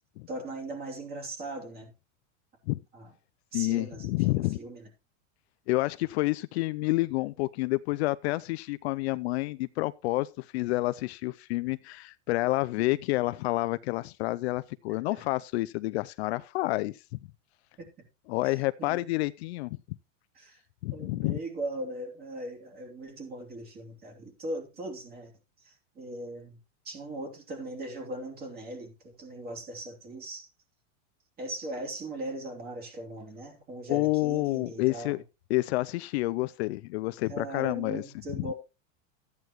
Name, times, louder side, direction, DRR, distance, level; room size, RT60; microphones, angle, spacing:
voice 1, 0.3-1.9 2.9-3.1 3.5-4.9 12.8-13.0 15.1-15.2 17.8-17.9 18.4-19.1 20.3-20.6 20.9-25.3 25.6-26.6 26.8-30.5 31.4-35.2 37.3-38.5, right 1 dB, 25° right, 3.0 m, -39 dB
voice 2, 3.5-4.6 5.7-17.0 18.3-19.8 20.8-21.4 33.9-35.2 35.5-38.0 38.3-38.5, left 20 dB, 55° left, 0.5 m, -29 dB
13.5 x 9.4 x 3.0 m
supercardioid pair, 155°, 38 cm